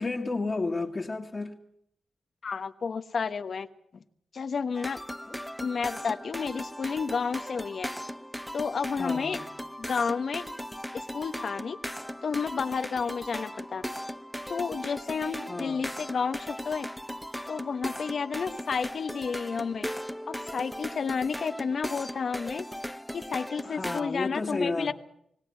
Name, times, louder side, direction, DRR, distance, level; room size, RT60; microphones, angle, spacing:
voice 1, 0.0-1.6 9.0-9.5 15.5-15.9 23.6-24.9, left 3 dB, 40° left, 2.1 m, -32 dB
voice 2, 2.4-3.7 3.9-4.0 4.3-5.0 5.6-7.9 8.5-9.4 9.8-10.4 10.9-11.8 12.2-13.8 14.5-16.9 17.5-19.9 20.3-22.7 23.1-24.9, left 5 dB, 65° left, 1.2 m, -31 dB
sound 1, 4.7-24.0, equal, 5° left, 0.7 m, -38 dB
21.0 x 17.0 x 8.4 m
cardioid pair, 50°, 0 cm